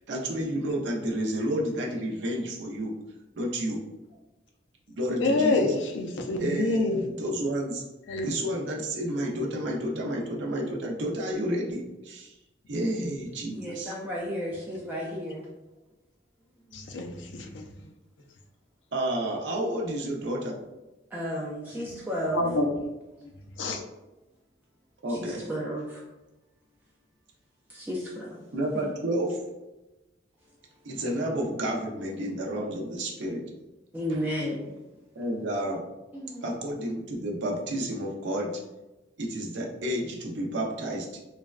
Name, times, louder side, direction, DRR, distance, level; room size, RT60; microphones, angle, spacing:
voice 1, 0.0-2.9 3.4-3.8 4.9-5.7 6.4-7.8 8.2-12.3 12.7-13.9 18.9-20.6 25.0-25.4 28.5-29.4 30.8-33.4 35.1-35.8 36.4-38.6 39.2-41.2, right 1 dB, 75° right, -1 dB, 0.6 m, -30 dB
voice 2, 5.2-7.0 8.1-8.3 16.7-17.7 21.9-22.0 22.3-22.7 23.6-23.8, left 2 dB, 80° left, 4 dB, 0.4 m, -27 dB
voice 3, 13.5-15.5 16.7-16.8 17.4-17.5 21.1-22.4 25.1-26.0 27.7-28.4 28.7-28.9 33.9-34.7 36.1-36.4, equal, 10° right, -4 dB, 0.3 m, -33 dB
3.2 x 2.1 x 2.3 m, 1.0 s
head